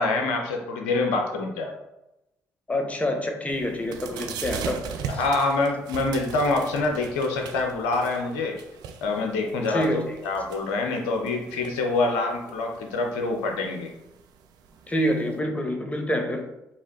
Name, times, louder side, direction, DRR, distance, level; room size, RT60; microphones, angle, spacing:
voice 1, 0.0-1.7 5.1-8.6 9.0-13.9, left 3 dB, 80° left, 3 dB, 0.6 m, -26 dB
voice 2, 2.7-4.8 9.7-10.2 14.9-16.5, equal, 20° left, 4 dB, 0.9 m, -27 dB
sound 1, 3.5-15.4, right 7 dB, 70° right, 0.4 m, -40 dB
4.8 x 2.9 x 2.8 m, 0.90 s
hypercardioid pair, 50°, 7 cm